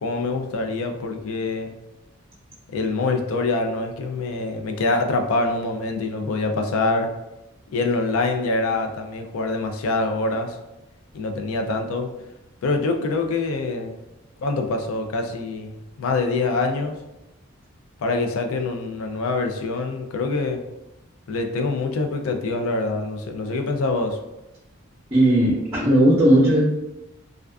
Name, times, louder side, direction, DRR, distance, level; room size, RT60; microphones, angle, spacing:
voice 1, 0.0-1.7 2.7-7.1 7.7-10.6 11.1-12.1 12.6-14.0 14.4-17.0 18.0-20.6 21.3-24.2, left 3 dB, 90° left, 5 dB, 0.4 m, -25 dB
voice 2, 25.1-26.6, right 1 dB, 20° right, -9 dB, 0.6 m, -16 dB
2.3 x 2.3 x 2.2 m, 0.95 s
head